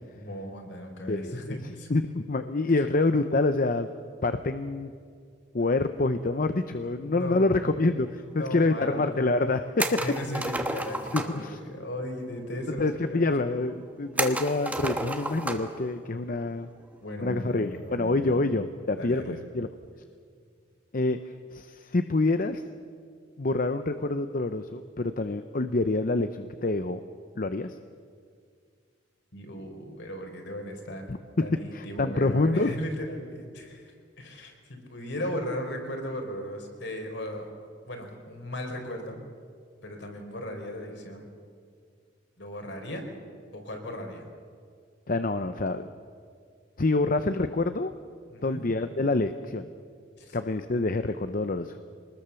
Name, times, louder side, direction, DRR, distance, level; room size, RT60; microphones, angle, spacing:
voice 1, 0.1-1.9 6.8-7.7 8.2-9.1 9.7-13.5 17.0-18.4 19.0-19.4 29.3-31.1 31.4-37.5 37.9-39.2 39.8-41.3 42.4-43.0 43.5-44.3 48.3-48.6 50.2-50.4, equal, 65° left, 3 dB, 3.9 m, -37 dB
voice 2, 1.1-1.6 1.9-3.9 4.2-4.9 5.5-9.9 11.1-11.6 12.8-16.7 17.2-19.7 20.9-21.2 21.5-22.6 23.4-27.0 27.4-27.7 31.1-31.2 31.7-32.7 45.1-45.9 46.8-47.9 48.4-49.7 50.3-51.8, left 2 dB, 45° left, 9 dB, 0.7 m, -27 dB
sound 1, 9.8-11.4 14.2-15.8 16.1-16.2 17.8-18.1, right 1 dB, 10° right, 1.2 m, -31 dB
24.5 x 20.0 x 7.0 m, 2.1 s
head